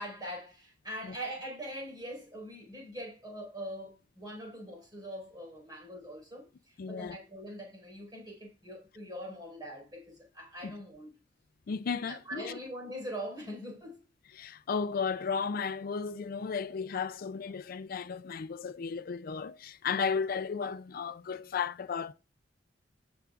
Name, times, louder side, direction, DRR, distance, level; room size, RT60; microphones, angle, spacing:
voice 1, 0.0-11.1 12.1-14.0, equal, 25° right, 4.7 m, -42 dB
voice 2, 6.8-7.2 10.6-10.7 11.7-12.6 14.3-22.1, left 5 dB, 55° left, 0.4 m, -34 dB
16.5 x 7.8 x 2.4 m
head